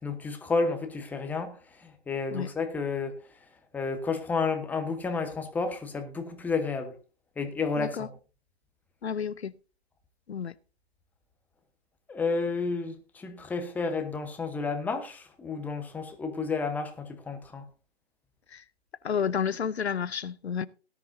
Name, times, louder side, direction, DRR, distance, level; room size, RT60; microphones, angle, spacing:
voice 1, 0.0-3.2 3.7-6.9 7.4-8.1 12.1-17.6, left 4 dB, 5° left, 1.0 m, -31 dB
voice 2, 7.8-8.1 9.0-9.5 10.3-10.5 18.5-18.6 19.0-20.7, left 7 dB, 75° left, 0.6 m, -30 dB
17.5 x 11.0 x 2.7 m
figure-of-eight pair, 130°, 32 cm